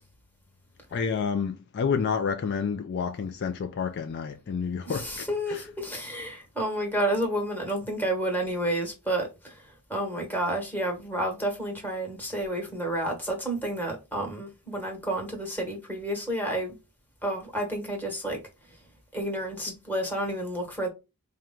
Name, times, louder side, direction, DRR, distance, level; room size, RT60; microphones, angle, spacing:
voice 1, 0.9-5.7, left 6 dB, 50° left, 0.3 m, -29 dB
voice 2, 4.9-16.7 17.2-18.4 19.1-20.9, right 1 dB, 10° left, 1.2 m, -30 dB
4.5 x 2.2 x 3.6 m
head